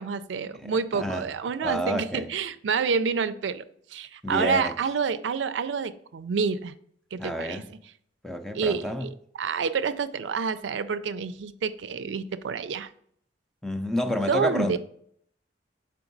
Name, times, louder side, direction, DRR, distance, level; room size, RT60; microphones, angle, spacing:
voice 1, 0.0-6.7 7.1-7.6 8.5-12.9 14.1-14.8, right 5 dB, 80° right, 0.4 m, -28 dB
voice 2, 0.6-1.3 1.6-2.3 4.2-4.7 7.2-7.7 8.2-9.1 13.6-14.8, equal, 5° left, 0.4 m, -29 dB
5.9 x 4.6 x 3.8 m
head